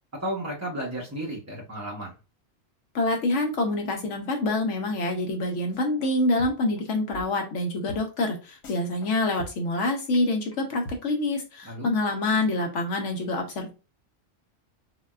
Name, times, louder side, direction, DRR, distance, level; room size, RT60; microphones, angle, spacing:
voice 1, 0.2-2.1 11.6-11.9, right 1 dB, 20° right, -3 dB, 0.4 m, -33 dB
voice 2, 2.9-13.7, left 2 dB, 70° left, 3 dB, 1.0 m, -26 dB
sound 1, 5.7-6.1 6.4-6.8 7.1-7.2 7.5-7.6 7.9-8.0 8.3-8.4 8.6-9.1 9.4-9.8 10.1-10.2 10.5-10.6 10.9-11.0, right 1 dB, 90° left, 1.2 m, -40 dB
4.0 x 2.1 x 2.3 m, 0.31 s
omnidirectional pair, 1.4 m